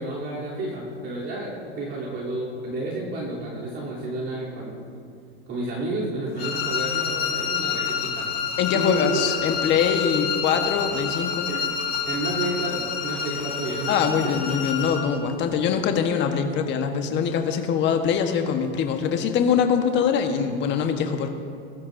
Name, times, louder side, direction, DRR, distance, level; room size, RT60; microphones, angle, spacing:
voice 1, 0.0-4.8 5.5-8.3 8.7-9.4 11.4-11.6 12.0-14.0 14.2-14.3, right 2 dB, 35° right, -7 dB, 3.3 m, -30 dB
sound 1, 6.4-15.1, left 7 dB, 65° left, 3.4 m, -28 dB
voice 2, 8.6-11.5 13.9-21.3, left 7 dB, 35° left, 5 dB, 1.3 m, -23 dB
21.0 x 12.0 x 2.7 m, 2.5 s
supercardioid pair, 130°, 32 cm